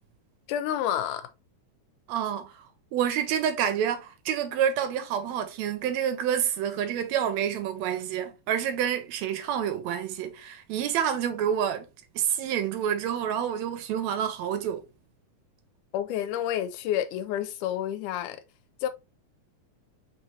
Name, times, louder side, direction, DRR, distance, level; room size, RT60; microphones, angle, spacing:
voice 1, 0.5-1.3 15.9-18.4 18.8-18.9, left 11 dB, 85° left, 2.1 m, -29 dB
voice 2, 2.1-11.9 12.1-14.8, right 9 dB, 80° right, 1.7 m, -28 dB
4.6 x 3.9 x 2.7 m
omnidirectional pair, 3.6 m